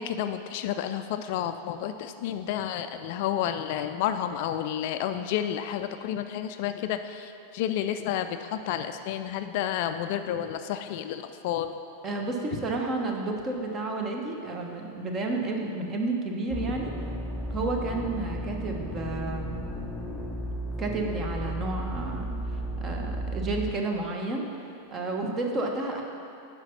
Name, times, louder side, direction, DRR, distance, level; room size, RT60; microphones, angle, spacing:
voice 1, 0.0-7.3 7.5-11.7, left 10 dB, 50° left, 9 dB, 0.4 m, -30 dB
voice 2, 12.0-16.9 17.5-19.6 20.8-22.4 22.8-24.5 24.9-26.0, right 2 dB, 25° right, 2 dB, 1.1 m, -31 dB
sound 1, 16.5-23.7, right 1 dB, ahead, 0.8 m, -34 dB
9.6 x 5.8 x 5.8 m, 2.6 s
figure-of-eight pair, 90°, 0 cm